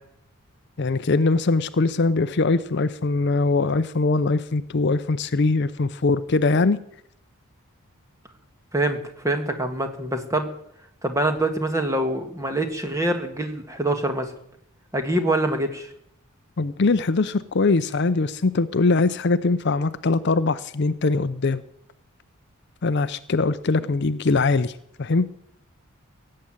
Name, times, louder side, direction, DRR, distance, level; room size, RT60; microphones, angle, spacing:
voice 1, 0.8-6.8 16.6-21.6 22.8-24.7 25.0-25.3, left 3 dB, 50° left, 13 dB, 0.5 m, -22 dB
voice 2, 8.7-10.5 11.0-14.3 14.9-15.9, right 1 dB, 15° right, 6 dB, 1.5 m, -25 dB
17.0 x 7.6 x 9.0 m, 0.74 s
head